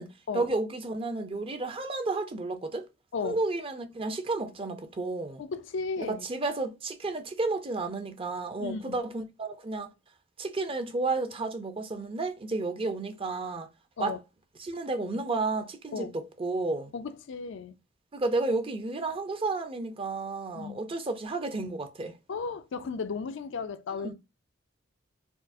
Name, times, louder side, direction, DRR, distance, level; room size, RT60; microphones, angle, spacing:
voice 1, 0.3-2.9 3.2-5.4 6.0-9.9 10.4-13.7 14.0-14.2 14.6-16.9 18.1-22.2 24.0-24.1, right 3 dB, 30° right, 0.5 m, -32 dB
voice 2, 5.4-6.3 8.6-9.0 14.0-14.2 15.9-16.1 16.9-17.8 20.6-20.8 22.3-24.1, left 5 dB, 65° left, 0.4 m, -35 dB
4.3 x 2.0 x 2.5 m
head